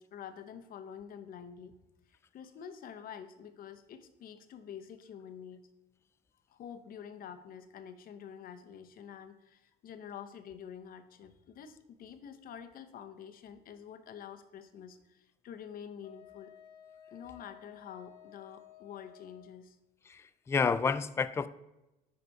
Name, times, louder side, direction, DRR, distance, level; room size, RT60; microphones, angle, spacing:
voice 1, 0.0-1.8 2.1-5.7 6.5-16.5 17.1-19.8, left 8 dB, 60° left, 9 dB, 0.9 m, -48 dB
Wind instrument woodwind instrument, 16.0-19.6, left 10 dB, 35° left, 1.2 m, -55 dB
voice 2, 20.1-21.5, left 5 dB, 15° left, 14 dB, 0.3 m, -30 dB
10.5 x 4.1 x 4.7 m, 0.96 s
cardioid pair, 110°, 17 cm